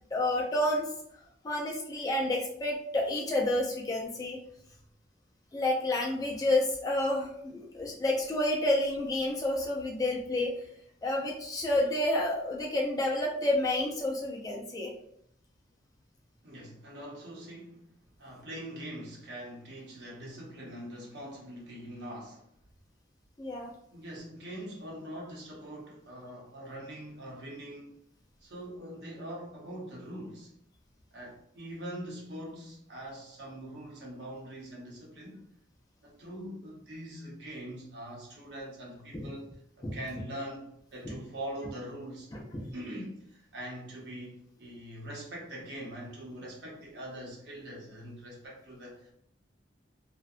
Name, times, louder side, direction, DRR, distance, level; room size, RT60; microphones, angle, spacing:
voice 1, 0.1-0.9 1.4-4.4 5.5-10.5 11.0-14.9 23.4-23.7 39.1-39.3 39.8-40.0 41.0-41.2 42.3-42.7, left 1 dB, 20° left, 0.3 m, -29 dB
voice 2, 16.4-22.5 23.9-27.9 28.4-30.5 31.1-35.4 36.0-42.3 42.7-49.1, right 1 dB, 65° right, 0.7 m, -43 dB
2.6 x 2.1 x 2.4 m
head